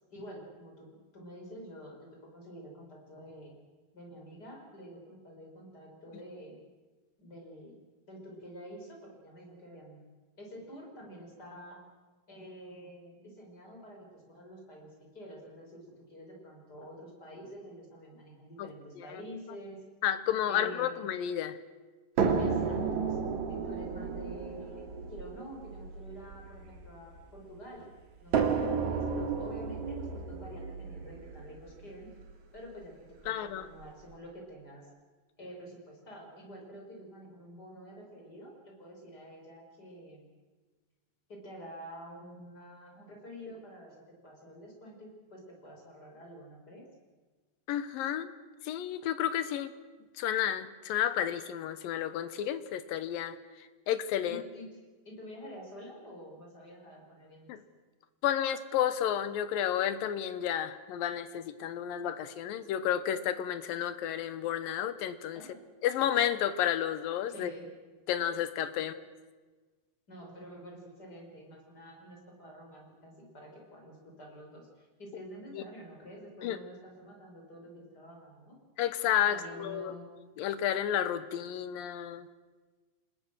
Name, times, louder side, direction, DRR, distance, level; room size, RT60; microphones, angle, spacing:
voice 1, 0.1-3.6 3.9-6.6 7.2-7.8 8.1-10.0 10.4-11.8 12.3-19.8 20.5-21.0 22.4-27.9 28.2-32.1 32.5-32.9 33.2-34.9 35.4-40.3 41.3-46.8 54.2-54.7 55.0-57.5 65.3-65.6 67.3-67.7 70.1-78.6 79.3-80.1, equal, 25° left, 0 dB, 6.0 m, -48 dB
voice 2, 18.6-19.1 20.0-21.6 33.3-33.7 47.7-48.3 48.6-49.7 50.2-53.4 53.9-54.4 57.5-57.6 58.2-65.4 65.8-67.5 68.1-68.9 75.5-75.6 76.4-76.6 78.8-80.0 80.4-82.3, left 10 dB, 80° left, 13 dB, 2.8 m, -31 dB
sound 1, 22.2-27.4 28.3-32.3 33.3-33.4 33.8-33.9, right 5 dB, 60° right, 3.2 m, -32 dB
29.0 x 20.5 x 6.3 m, 1.3 s
omnidirectional pair, 4.1 m